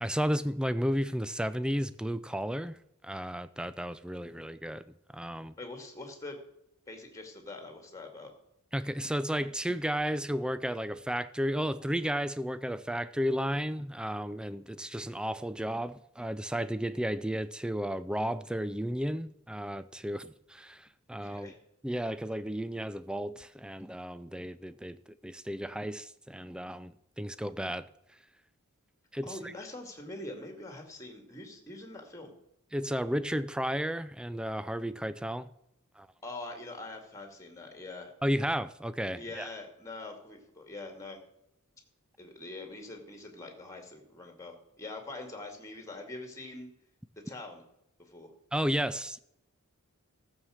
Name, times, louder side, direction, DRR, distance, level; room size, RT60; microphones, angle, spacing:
voice 1, 0.0-2.8 3.0-4.8 5.1-5.5 8.7-21.5 21.8-27.9 29.1-29.5 32.7-35.5 36.0-36.1 38.2-39.5 48.5-49.2, equal, 5° right, 0.4 m, -33 dB
voice 2, 5.6-6.4 6.9-8.3 21.2-21.6 29.2-32.3 36.2-38.1 39.2-41.2 42.2-46.7 47.2-47.6 48.0-48.3, left 2 dB, 15° left, 2.3 m, -44 dB
14.5 x 7.4 x 6.4 m
head